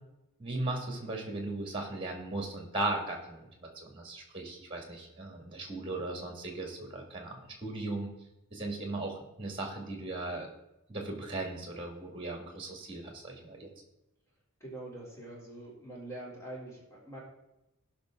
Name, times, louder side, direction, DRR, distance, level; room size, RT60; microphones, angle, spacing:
voice 1, 0.4-8.1 8.5-10.5 10.9-13.7, right 2 dB, 25° right, 2 dB, 2.3 m, -37 dB
voice 2, 14.6-17.2, right 1 dB, 15° left, -5 dB, 3.6 m, -44 dB
16.0 x 6.0 x 3.9 m, 0.90 s
head